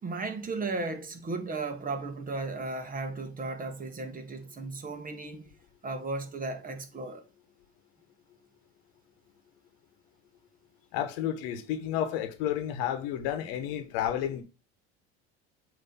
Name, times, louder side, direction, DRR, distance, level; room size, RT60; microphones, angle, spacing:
voice 1, 0.0-5.5 5.8-7.2, right 3 dB, 30° right, 1.4 m, -35 dB
voice 2, 10.9-14.4, left 10 dB, 75° left, 1.2 m, -31 dB
7.2 x 3.1 x 5.6 m
supercardioid pair, 95°, 31 cm